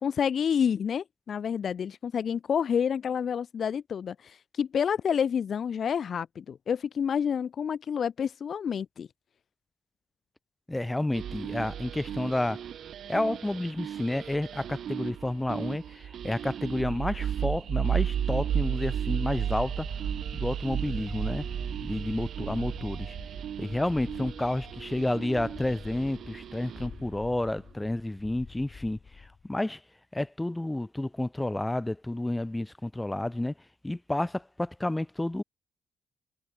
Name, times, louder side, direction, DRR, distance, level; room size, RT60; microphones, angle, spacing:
voice 1, 0.0-9.1, left 7 dB, 55° left, 0.6 m, -29 dB
voice 2, 10.7-12.6 13.1-19.9 20.3-21.4 21.8-23.1 23.6-29.8 30.1-33.5 33.8-35.4, left 1 dB, 10° left, 1.7 m, -30 dB
sound 1, 11.1-27.0, right 9 dB, 65° right, 0.9 m, -34 dB
sound 2, 19.6-29.5, left 5 dB, 35° left, 7.3 m, -47 dB
cardioid pair, 90°, 0 cm